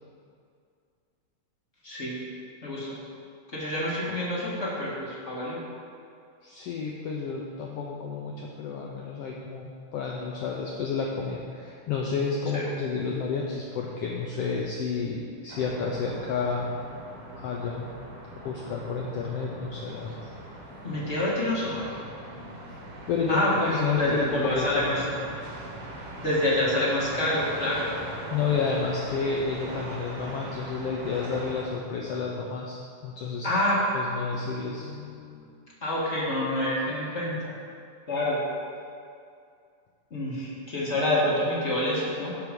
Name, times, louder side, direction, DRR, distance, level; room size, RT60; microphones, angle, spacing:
voice 1, 1.8-2.2 2.6-3.0 3.5-5.6 12.5-12.6 20.8-21.9 23.3-23.5 24.0-25.0 26.2-27.9 33.4-33.8 35.8-37.5 38.1-38.4 40.1-42.3, left 1 dB, 30° left, -7 dB, 1.4 m, -27 dB
voice 2, 6.4-16.7 17.4-17.9 18.3-20.3 23.1-25.1 25.9-26.0 28.3-33.5 33.9-35.5, left 5 dB, 90° left, -2 dB, 1.3 m, -31 dB
sound 1, 15.5-31.6, right 1 dB, 60° right, 2.1 m, -41 dB
11.5 x 4.8 x 5.2 m, 2.3 s
omnidirectional pair, 3.6 m